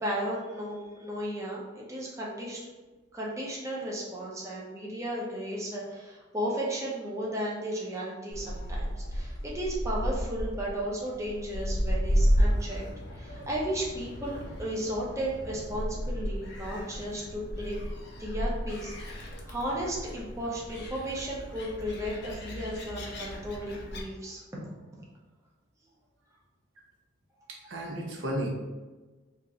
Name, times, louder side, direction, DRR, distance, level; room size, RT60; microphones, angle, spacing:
voice 1, 0.0-2.6 3.1-12.8 13.1-17.7 18.2-24.7, right 1 dB, 15° right, -4 dB, 0.6 m, -34 dB
Gull seagull, 8.3-24.0, equal, 55° left, 0.7 m, -33 dB
voice 2, 27.5-28.5, right 1 dB, 80° right, -2 dB, 0.7 m, -33 dB
2.9 x 2.5 x 3.7 m, 1.3 s
head